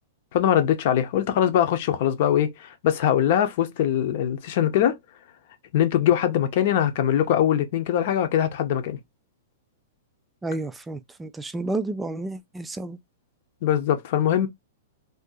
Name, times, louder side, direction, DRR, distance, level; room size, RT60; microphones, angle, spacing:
voice 1, 0.3-5.0 5.7-9.0 13.6-14.5, left 10 dB, 50° left, 0.7 m, -22 dB
voice 2, 10.4-13.0, right 2 dB, 5° right, 0.3 m, -31 dB
2.7 x 2.5 x 3.7 m
supercardioid pair, 160°, 0 cm